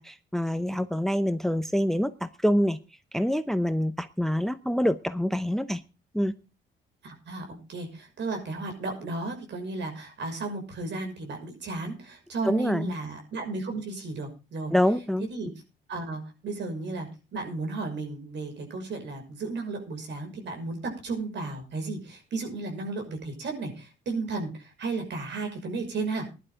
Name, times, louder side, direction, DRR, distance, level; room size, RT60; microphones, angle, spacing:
voice 1, 0.0-2.8 3.1-5.8 6.1-6.3 12.4-12.9 14.7-15.3, equal, ahead, 13 dB, 0.7 m, -26 dB
voice 2, 7.0-14.7 15.3-15.5 15.9-26.3, right 3 dB, 65° right, 4 dB, 6.0 m, -34 dB
16.0 x 11.5 x 3.7 m, 0.31 s
cardioid pair, 90°, 20 cm